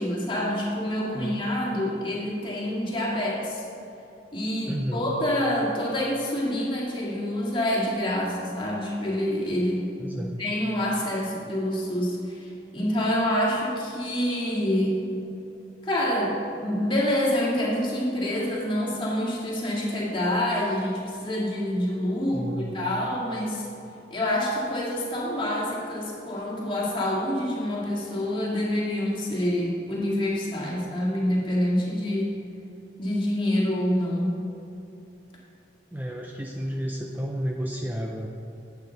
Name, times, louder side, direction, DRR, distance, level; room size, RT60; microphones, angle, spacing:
voice 1, 0.0-3.6 4.3-9.8 10.1-15.0 15.8-23.7 24.1-32.3 33.0-34.4, left 1 dB, 30° left, -4 dB, 2.0 m, -27 dB
voice 2, 4.7-5.1 10.0-10.4 22.3-22.8 35.9-38.3, equal, 10° right, 0 dB, 0.5 m, -31 dB
11.5 x 8.5 x 4.0 m, 2.9 s
head